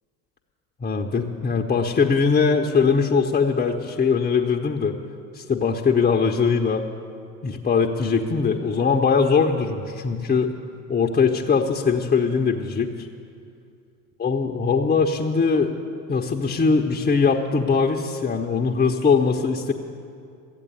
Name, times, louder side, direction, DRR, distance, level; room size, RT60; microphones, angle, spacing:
voice 1, 0.8-5.0 5.3-6.8 7.4-10.5 10.9-13.1 14.2-15.7 16.1-19.7, left 5 dB, 15° left, 0 dB, 0.7 m, -21 dB
14.0 x 8.6 x 8.5 m, 2.4 s
figure-of-eight pair, 80°, 49 cm